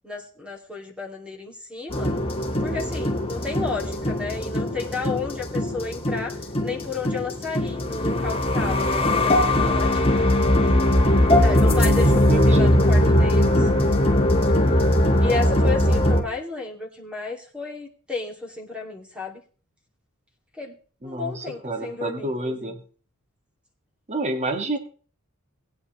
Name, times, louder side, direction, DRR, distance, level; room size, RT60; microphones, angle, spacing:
voice 1, 0.0-2.1 2.6-10.2 11.4-13.7 15.2-19.4 20.6-20.8 21.0-22.7, left 3 dB, 5° right, 1 dB, 2.3 m, -32 dB
sound 1, 1.9-16.2, left 1 dB, 25° left, 1.6 m, -20 dB
voice 2, 11.7-12.0 12.3-12.8 21.0-22.8 24.1-24.8, right 2 dB, 30° right, 6 dB, 1.6 m, -29 dB
19.0 x 9.4 x 3.1 m, 0.40 s
head